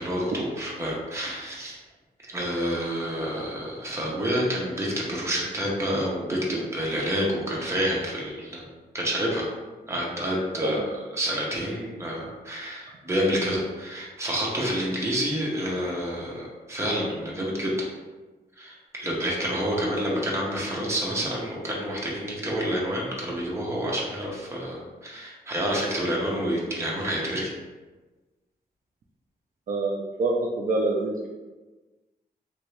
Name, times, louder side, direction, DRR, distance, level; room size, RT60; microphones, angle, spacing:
voice 1, 0.0-1.8 2.3-8.6 8.9-9.5 9.9-10.8 11.1-17.9 18.6-27.5, equal, 15° right, -4 dB, 0.7 m, -28 dB
voice 2, 30.2-31.3, right 2 dB, 55° right, -2 dB, 0.4 m, -26 dB
3.3 x 2.6 x 3.1 m, 1.2 s
wide cardioid pair, 160°, 17 cm